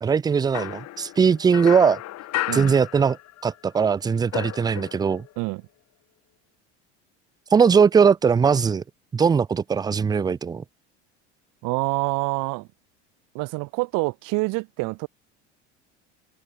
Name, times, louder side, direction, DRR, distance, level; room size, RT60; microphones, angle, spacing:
voice 1, 0.0-2.0 2.5-3.2 3.4-5.3 7.5-8.8 9.1-10.6, right 6 dB, 10° right, 0.3 m, -20 dB
sound 1, 0.5-3.6 3.8-5.3, left 15 dB, 45° left, 1.3 m, -33 dB
voice 2, 11.6-12.7 13.3-15.1, right 26 dB, 65° right, 3.2 m, -26 dB
hypercardioid pair, 80°, 35 cm